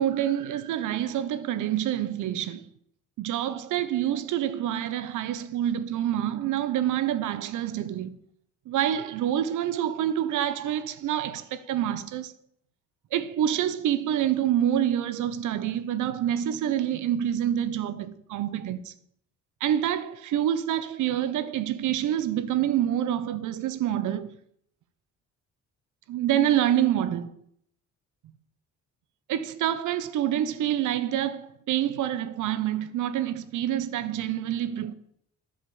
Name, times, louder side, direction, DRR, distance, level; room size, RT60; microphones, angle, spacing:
voice 1, 0.0-2.7 3.2-8.2 8.7-12.3 13.1-18.9 19.6-24.3 26.1-27.3 29.3-34.9, right 11 dB, 80° right, 0.8 m, -27 dB
9.8 x 5.4 x 7.7 m
cardioid pair, 90°, 30 cm